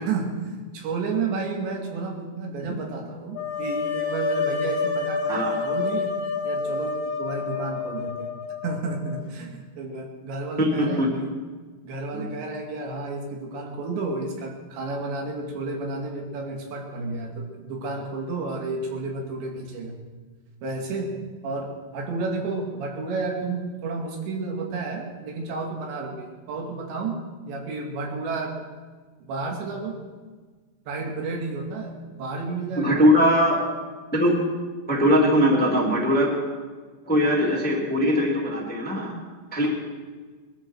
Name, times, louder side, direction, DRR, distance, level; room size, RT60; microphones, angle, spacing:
voice 1, 0.1-6.1 6.4-8.4 8.6-11.3 11.8-20.0 20.6-21.2 21.4-28.5 29.2-30.0 30.9-33.2, right 3 dB, 80° right, 1 dB, 4.4 m, -31 dB
sound 1, 3.3-9.2, left 4 dB, 60° left, 3.8 m, -28 dB
voice 2, 10.6-11.1 12.1-12.2 32.8-33.6 34.1-34.3 34.9-36.3 37.1-39.1 39.5-39.7, equal, 5° left, -3 dB, 1.9 m, -21 dB
22.0 x 13.0 x 4.7 m, 1.4 s
omnidirectional pair, 5.0 m